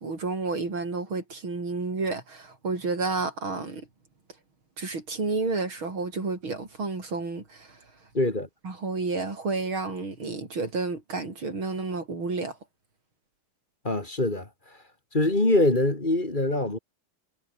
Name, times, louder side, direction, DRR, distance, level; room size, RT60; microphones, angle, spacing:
voice 1, 0.0-3.9 4.8-7.9 8.6-12.6, right 3 dB, 85° right, 5.8 m, -31 dB
voice 2, 8.1-8.5 13.8-14.5 15.1-16.8, left 2 dB, 25° left, 3.0 m, -23 dB
omnidirectional pair, 2.2 m